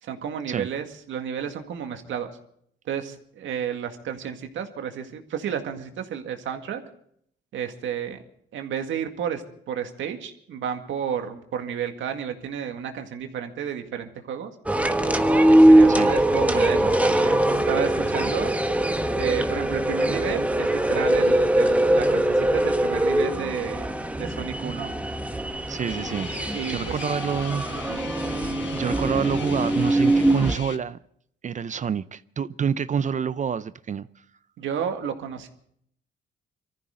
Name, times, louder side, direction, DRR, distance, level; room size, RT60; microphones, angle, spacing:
voice 1, 0.0-2.3 2.9-6.8 7.5-8.2 8.5-14.5 15.5-18.5 19.1-23.9 24.2-24.9 26.5-26.9 27.9-28.1 34.6-35.5, right 8 dB, 75° right, 2.0 m, -31 dB
sound 1, 14.7-30.6, right 1 dB, 5° right, 1.2 m, -21 dB
voice 2, 25.7-28.0 28.7-31.0 31.4-34.1, right 7 dB, 40° right, 0.5 m, -28 dB
Guitar, 25.9-30.8, left 8 dB, 70° left, 1.1 m, -39 dB
24.0 x 14.5 x 3.8 m
cardioid pair, 90°, 20 cm